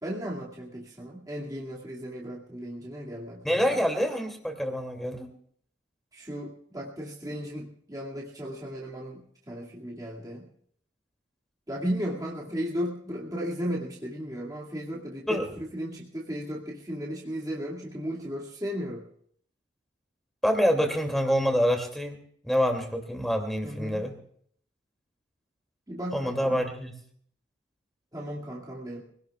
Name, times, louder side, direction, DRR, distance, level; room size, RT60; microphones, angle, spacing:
voice 1, 0.0-3.8 6.1-10.5 11.7-19.0 23.6-24.1 25.9-26.6 28.1-29.0, equal, 20° right, -4 dB, 2.3 m, -35 dB
voice 2, 3.4-5.3 15.3-15.5 20.4-22.2 22.4-24.1 26.1-26.9, equal, ahead, 4 dB, 2.7 m, -26 dB
25.0 x 18.0 x 2.4 m, 0.63 s
head